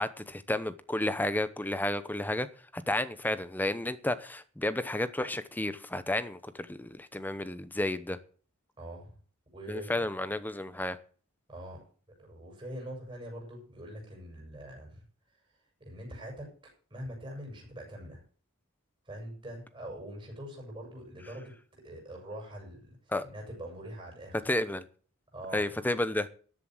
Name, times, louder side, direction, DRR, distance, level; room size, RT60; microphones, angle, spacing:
voice 1, 0.0-2.5 2.7-8.2 9.7-11.0 23.1-23.2 24.5-24.9 25.5-26.3, left 1 dB, 10° left, 13 dB, 0.8 m, -32 dB
voice 2, 8.8-9.2 9.5-10.1 11.5-15.0 15.8-16.5 16.9-18.2 19.1-21.5 21.8-24.4 25.3-25.8, equal, 25° right, 0 dB, 7.1 m, -43 dB
13.5 x 7.7 x 7.8 m, 0.43 s
head